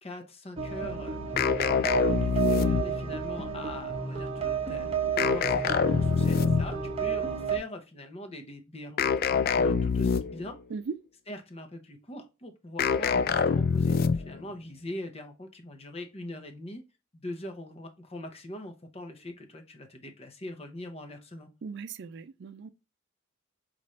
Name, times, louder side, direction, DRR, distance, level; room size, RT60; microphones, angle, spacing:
voice 1, 0.0-4.9 5.2-10.6 11.3-16.8 17.1-21.5, left 1 dB, 30° left, 0.7 m, -42 dB
sound 1, 0.6-7.6, right 6 dB, 30° right, 0.8 m, -32 dB
sound 2, 1.4-3.1 5.2-6.8 9.0-10.5 12.8-14.4, left 5 dB, 50° left, 0.3 m, -25 dB
voice 2, 21.6-22.7, right 5 dB, 60° right, 0.4 m, -38 dB
5.5 x 2.5 x 3.1 m
head